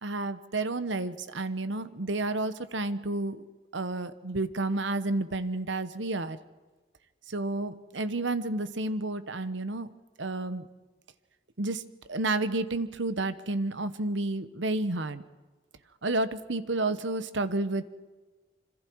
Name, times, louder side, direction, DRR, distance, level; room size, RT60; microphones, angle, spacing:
voice 1, 0.0-3.4 3.7-6.4 7.3-9.9 10.2-10.7 11.6-11.8 12.1-15.2 16.0-17.9, right 2 dB, 75° right, 12 dB, 1.1 m, -30 dB
26.5 x 25.5 x 4.7 m, 1.3 s
head